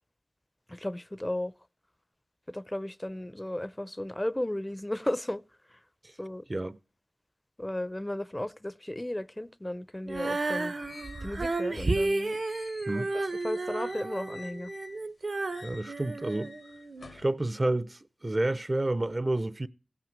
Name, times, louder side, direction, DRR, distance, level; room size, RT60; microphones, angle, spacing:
voice 1, 0.7-1.5 2.5-5.4 6.2-6.4 7.6-10.7 11.2-12.4 12.9-13.1 13.4-14.7, left 1 dB, 20° left, 0.5 m, -34 dB
Female singing, 10.1-17.1, right 2 dB, 65° right, 0.9 m, -32 dB
sound 1, 10.3-15.1 15.4-17.3, left 3 dB, 80° left, 1.1 m, -50 dB
voice 2, 15.6-16.6 17.1-19.7, right 2 dB, 35° right, 0.6 m, -30 dB
16.0 x 6.0 x 7.3 m
wide cardioid pair, 50°, 0 cm